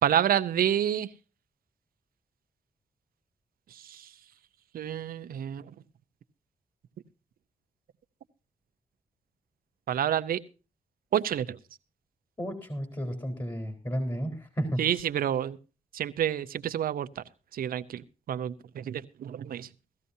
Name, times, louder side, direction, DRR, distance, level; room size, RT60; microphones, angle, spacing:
voice 1, 0.0-1.1 3.7-4.1 4.7-5.7 9.9-10.4 11.1-11.6 14.8-15.6 15.9-17.2 17.5-19.7, right 10 dB, 90° right, 13 dB, 0.7 m, -29 dB
voice 2, 12.4-14.9, equal, 30° left, 5 dB, 4.1 m, -32 dB
18.0 x 14.0 x 2.7 m, 0.33 s
cardioid pair, 60°, 15 cm